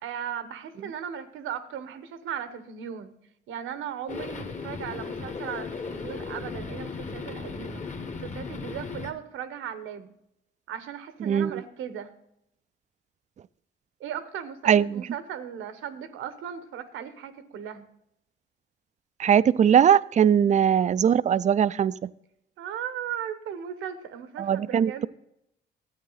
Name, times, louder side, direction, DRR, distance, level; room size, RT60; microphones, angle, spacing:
voice 1, 0.0-3.1 3.5-7.8 8.2-10.1 10.7-12.1 14.0-17.9 20.4-20.6 22.6-25.1, right 9 dB, 85° right, 11 dB, 1.1 m, -37 dB
sound 1, 4.1-9.1, left 4 dB, 35° left, 1.5 m, -36 dB
voice 2, 11.2-11.6 14.7-15.0 19.2-22.1 24.4-24.9, right 8 dB, 35° right, 18 dB, 0.4 m, -20 dB
13.0 x 9.0 x 4.0 m, 0.79 s
cardioid pair, 90°, 20 cm